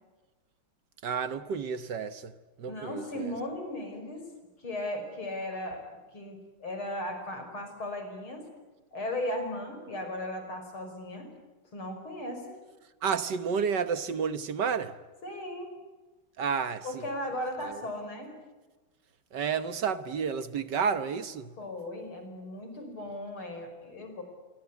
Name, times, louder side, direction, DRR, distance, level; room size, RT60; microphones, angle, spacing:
voice 1, 1.0-3.3 13.0-14.9 16.4-17.0 17.6-17.8 19.3-21.5, right 6 dB, 60° right, 1.6 m, -31 dB
voice 2, 2.7-4.3 4.6-8.5 8.9-11.3 11.7-12.5 15.2-15.8 16.8-18.4 21.6-24.2, left 1 dB, 80° left, 6.2 m, -37 dB
27.5 x 24.0 x 8.3 m
omnidirectional pair, 2.3 m